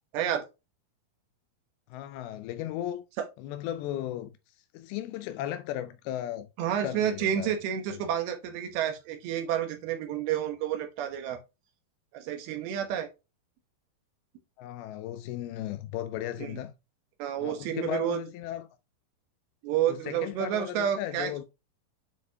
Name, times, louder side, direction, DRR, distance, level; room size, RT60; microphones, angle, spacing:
voice 1, 0.1-0.5 6.6-11.4 12.1-13.1 16.4-16.6 17.2-18.2 19.6-21.3, right 10 dB, 85° right, 3.0 m, -30 dB
voice 2, 1.9-3.1 3.4-4.4 4.7-6.5 6.8-7.6 7.9-8.0 14.6-16.7 17.4-18.7 19.9-21.4, left 12 dB, 85° left, 2.4 m, -36 dB
8.8 x 4.1 x 2.8 m
omnidirectional pair, 4.4 m